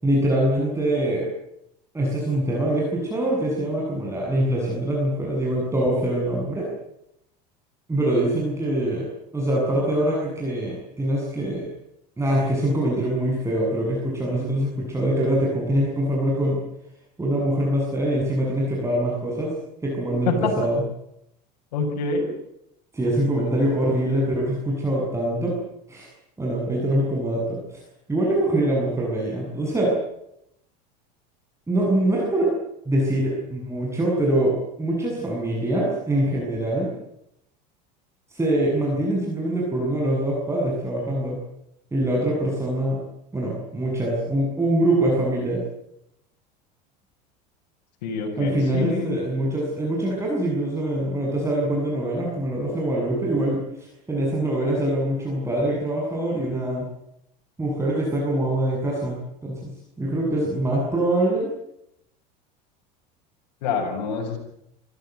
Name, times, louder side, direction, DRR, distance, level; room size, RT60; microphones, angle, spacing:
voice 1, 0.0-1.3 1.9-6.7 7.9-9.1 9.3-11.7 12.2-16.6 17.2-19.5 19.8-20.8 22.9-25.6 25.9-26.1 26.4-27.8 28.1-29.9 31.7-32.5 32.9-36.9 38.3-41.4 41.9-43.0 43.3-45.6 48.4-56.9 57.6-61.5, right 1 dB, 15° right, -3 dB, 7.8 m, -24 dB
voice 2, 21.7-22.3 48.0-49.2 63.6-64.4, left 4 dB, 85° left, 0 dB, 7.3 m, -26 dB
26.0 x 16.5 x 9.6 m, 0.80 s
supercardioid pair, 110°, 21 cm